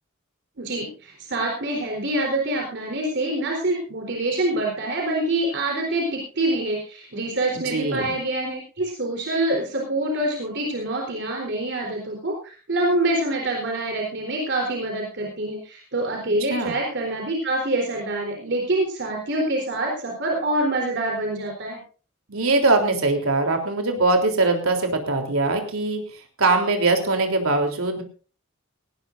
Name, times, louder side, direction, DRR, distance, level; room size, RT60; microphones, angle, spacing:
voice 1, 0.6-21.8, right 1 dB, 55° right, 0 dB, 3.9 m, -26 dB
voice 2, 7.7-8.1 16.5-16.7 22.3-26.0 26.4-28.0, right 2 dB, 90° right, 4 dB, 3.5 m, -21 dB
18.5 x 17.5 x 2.6 m, 0.37 s
head